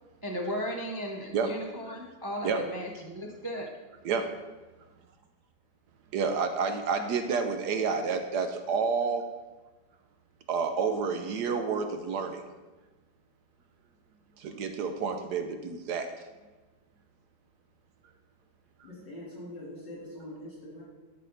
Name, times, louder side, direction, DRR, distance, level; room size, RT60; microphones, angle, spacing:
voice 1, 0.2-3.7, equal, 25° right, 0 dB, 0.4 m, -36 dB
voice 2, 6.1-9.2 10.5-12.4 14.4-16.1, right 5 dB, 70° right, 7 dB, 1.2 m, -29 dB
voice 3, 18.8-20.8, left 1 dB, 70° left, -7 dB, 4.3 m, -43 dB
12.5 x 5.9 x 3.9 m, 1.2 s
omnidirectional pair, 2.0 m